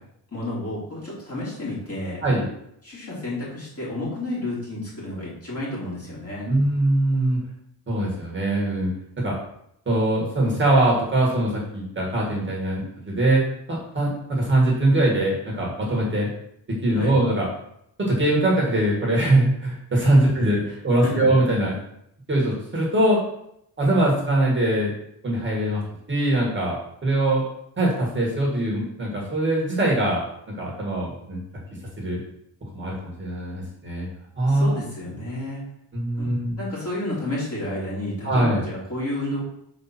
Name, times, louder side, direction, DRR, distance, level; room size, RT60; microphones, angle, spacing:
voice 1, 0.3-2.2 2.8-6.5 16.9-17.2 20.4-20.8 21.0-21.3 34.5-35.7 36.2-39.4, left 1 dB, 35° left, -6 dB, 2.5 m, -31 dB
voice 2, 6.5-7.4 7.9-8.9 9.2-9.3 9.8-16.3 16.8-17.5 18.0-21.8 22.3-23.2 23.8-24.9 25.2-25.8 26.1-26.8 27.0-27.4 27.8-30.2 30.5-31.4 32.0-32.2 32.7-34.1 34.4-34.8 35.9-36.6 38.2-38.6, right 1 dB, 25° right, -3 dB, 1.6 m, -22 dB
5.2 x 4.1 x 5.8 m, 0.74 s
wide cardioid pair, 170°, 42 cm